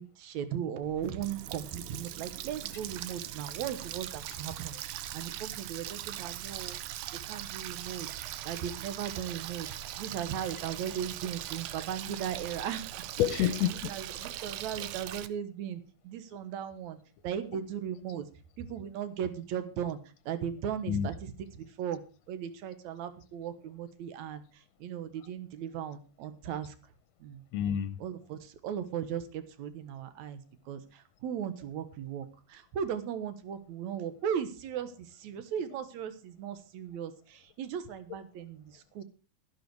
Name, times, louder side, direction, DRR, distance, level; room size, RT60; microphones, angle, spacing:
voice 1, 0.0-6.8 7.3-8.1 8.4-9.7 10.0-13.0 13.3-13.5 13.9-17.0 17.2-18.3 18.6-20.0 20.3-22.0 22.3-24.4 24.8-26.7 27.2-27.4 28.0-30.4 30.7-39.0, right 8 dB, 70° right, 11 dB, 2.5 m, -37 dB
Water tap faucet, 0.8-15.3, right 13 dB, 90° right, 2.3 m, -40 dB
voice 2, 13.2-13.9 20.9-21.1 27.5-28.0, left 10 dB, 75° left, 13 dB, 1.8 m, -28 dB
12.5 x 11.5 x 4.7 m, 0.34 s
omnidirectional pair, 3.4 m